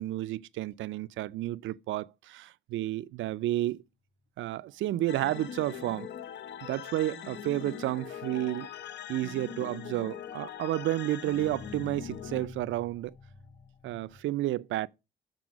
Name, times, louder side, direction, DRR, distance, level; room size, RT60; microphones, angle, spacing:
voice 1, 0.0-3.8 4.4-6.1 6.6-8.7 9.1-13.1 13.8-14.9, right 15 dB, 75° right, 0.5 m, -31 dB
sound 1, 4.6-14.2, left 4 dB, 35° left, 2.0 m, -54 dB
sound 2, 5.1-12.5, left 9 dB, 60° left, 0.7 m, -42 dB
12.0 x 4.2 x 5.1 m
cardioid pair, 90°, 20 cm